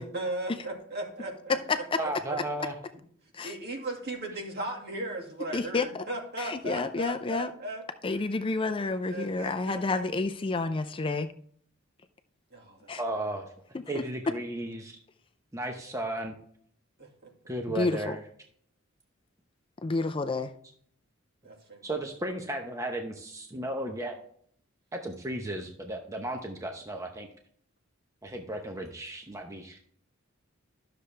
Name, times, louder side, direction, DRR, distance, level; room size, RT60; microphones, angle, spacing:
voice 1, 0.0-1.6 2.0-2.1 3.4-7.8 9.0-10.0 12.5-12.9 17.0-17.3 21.4-22.0, right 1 dB, 50° right, 0 dB, 2.3 m, -37 dB
voice 2, 2.0-2.7 13.0-13.5 13.9-15.0 15.5-16.4 17.5-18.2 21.8-24.2 24.9-27.3 28.2-29.8, right 1 dB, 15° right, 2 dB, 0.8 m, -34 dB
voice 3, 5.5-6.0 6.4-7.5 8.0-11.3 12.9-13.0 13.9-14.0 17.7-18.2 19.8-20.5, left 3 dB, 25° left, 9 dB, 0.4 m, -30 dB
12.0 x 6.8 x 3.3 m, 0.62 s
head